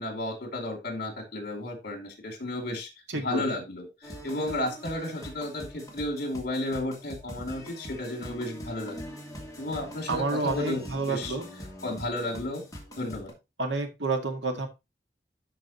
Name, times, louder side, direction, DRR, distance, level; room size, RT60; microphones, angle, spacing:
voice 1, 0.0-2.9 3.2-9.1 9.6-10.8 11.1-11.4 11.8-12.6 13.0-13.3, left 1 dB, 55° left, 4 dB, 2.7 m, -33 dB
voice 2, 3.1-3.6 10.1-11.5 13.6-14.7, right 3 dB, 75° right, 4 dB, 2.0 m, -29 dB
sound 1, 4.0-13.3, equal, 20° left, 2.6 m, -43 dB
12.5 x 5.0 x 2.9 m, 0.24 s
head